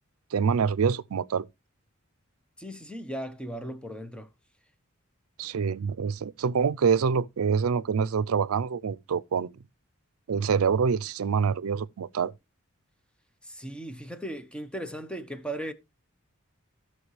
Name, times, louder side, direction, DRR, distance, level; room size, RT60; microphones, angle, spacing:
voice 1, 0.3-1.4 5.4-9.5 10.3-12.3, right 6 dB, 90° right, 0.4 m, -26 dB
voice 2, 2.6-4.3 13.4-15.7, right 1 dB, 5° left, 0.9 m, -37 dB
15.5 x 5.9 x 3.2 m
head